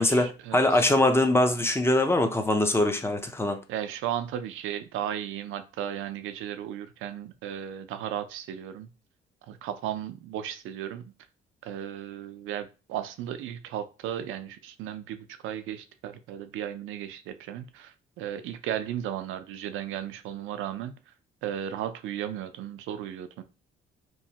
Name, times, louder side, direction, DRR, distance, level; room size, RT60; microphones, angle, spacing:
voice 1, 0.0-0.8 3.7-8.9 9.5-11.0 11.6-20.9 21.4-23.4, right 10 dB, 85° right, 0.4 m, -35 dB
voice 2, 0.5-3.6, left 1 dB, 10° left, 0.5 m, -22 dB
3.0 x 2.1 x 2.7 m
cardioid pair, 90°, 20 cm